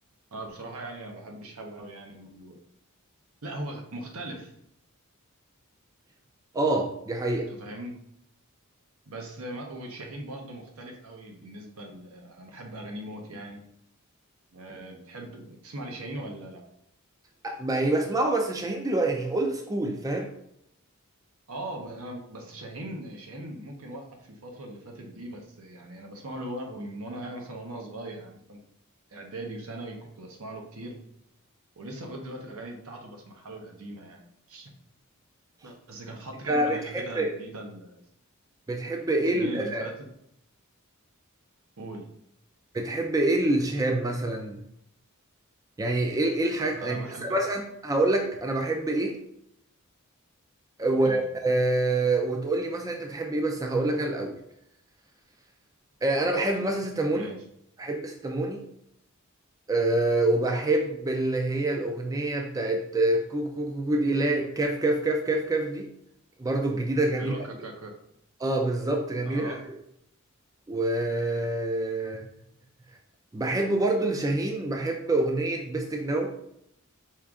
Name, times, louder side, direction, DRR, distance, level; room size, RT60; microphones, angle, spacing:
voice 1, 0.3-2.6 3.4-4.5 7.5-8.0 9.1-13.6 14.5-16.6 21.5-28.6 29.1-31.0 31.8-34.2 34.5-34.7 35.6-38.0 39.3-39.9 41.8-42.1 46.8-47.4 51.0-51.3 57.1-57.4 67.2-67.9 69.2-69.6, right 1 dB, 75° right, 2 dB, 0.8 m, -40 dB
voice 2, 6.5-7.5 17.4-20.3 36.5-37.3 38.7-39.9 42.7-44.6 45.8-49.2 50.8-54.4 56.0-57.3 57.8-58.6 59.7-65.9 66.4-67.3 68.4-69.6 70.7-72.3 73.3-76.3, right 2 dB, 15° right, 2 dB, 0.4 m, -26 dB
4.5 x 2.5 x 3.5 m, 0.73 s
head